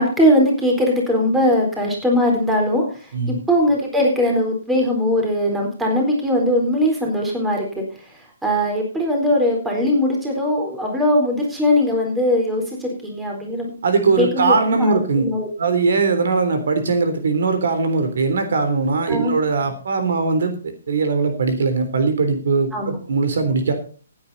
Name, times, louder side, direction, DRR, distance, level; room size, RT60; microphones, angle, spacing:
voice 1, 0.0-3.1 3.5-7.8 8.1-13.7 14.2-15.5 19.1-19.3 22.7-23.0, left 1 dB, 5° right, 0 dB, 4.1 m, -20 dB
voice 2, 13.8-15.2 15.6-23.7, right 4 dB, 70° right, 8 dB, 3.4 m, -20 dB
15.5 x 9.6 x 4.2 m, 0.38 s
hypercardioid pair, 155°, 0 cm